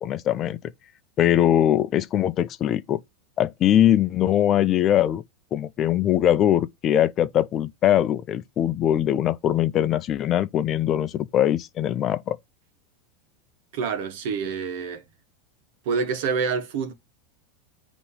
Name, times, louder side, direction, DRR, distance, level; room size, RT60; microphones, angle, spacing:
voice 1, 0.0-0.6 1.2-3.0 3.4-5.2 5.5-12.4, left 11 dB, 30° left, 0.5 m, -21 dB
voice 2, 13.7-15.0 15.8-16.9, right 5 dB, 65° right, 1.3 m, -27 dB
8.3 x 3.0 x 5.6 m
supercardioid pair, 140°, 0 cm